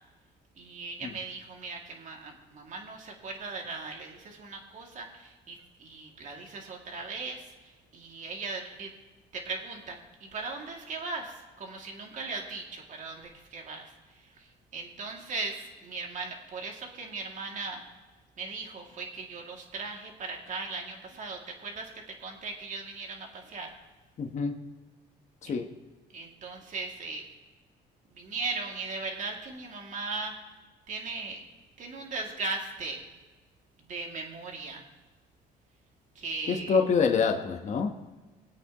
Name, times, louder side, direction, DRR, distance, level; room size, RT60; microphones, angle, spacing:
voice 1, 0.6-8.9 9.3-17.8 18.4-23.7 25.4-25.5 26.1-27.2 28.1-30.3 30.9-31.4 31.8-33.0 33.9-34.8 36.1-36.8, right 3 dB, 50° right, 1 dB, 2.4 m, -38 dB
voice 2, 24.2-24.6 25.4-25.7 36.5-37.9, left 5 dB, 45° left, 4 dB, 1.2 m, -26 dB
24.5 x 8.4 x 3.0 m, 1.2 s
cardioid pair, 110°, 17 cm